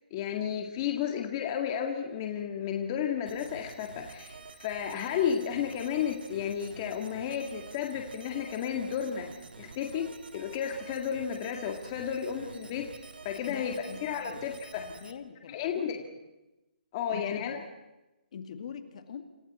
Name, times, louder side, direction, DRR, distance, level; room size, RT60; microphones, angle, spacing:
voice 1, 0.1-9.3 9.6-12.9 13.2-13.8 14.0-14.9 15.5-16.0 16.9-17.6, left 8 dB, 25° left, 3 dB, 1.9 m, -32 dB
sound 1, 3.3-15.1, right 4 dB, 90° right, 2.4 m, -48 dB
voice 2, 13.5-14.4 14.8-16.0 17.1-17.6 18.3-19.2, left 7 dB, 45° left, 7 dB, 2.3 m, -43 dB
29.0 x 27.0 x 4.3 m, 0.98 s
hypercardioid pair, 165°, 5 cm